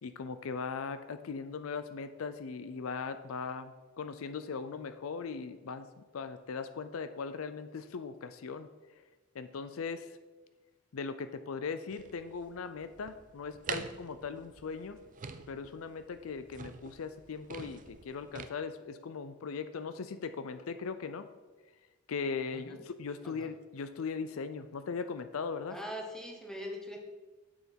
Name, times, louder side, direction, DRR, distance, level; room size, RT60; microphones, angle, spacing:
voice 1, 0.0-8.7 9.3-10.2 10.9-15.0 15.5-21.3 22.1-25.8, left 5 dB, 70° left, 11 dB, 0.5 m, -39 dB
sound 1, 11.9-18.5, right 6 dB, 40° right, 0.5 m, -46 dB
voice 2, 25.7-27.0, equal, 5° left, 1 dB, 1.2 m, -41 dB
8.7 x 6.6 x 4.4 m, 1.3 s
head